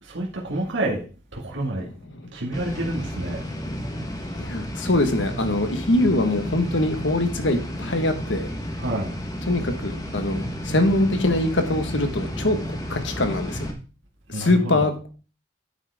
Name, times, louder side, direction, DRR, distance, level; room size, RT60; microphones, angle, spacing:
voice 1, 0.0-1.0 1.3-1.9 2.3-3.4 8.8-9.1 14.3-14.9, right 1 dB, 70° right, -1 dB, 1.9 m, -28 dB
sound 1, 2.5-13.7, equal, 20° left, 1.2 m, -32 dB
voice 2, 4.4-8.5 9.5-13.7 14.3-15.1, left 1 dB, 70° left, 7 dB, 1.4 m, -23 dB
9.2 x 8.6 x 3.6 m, 0.37 s
head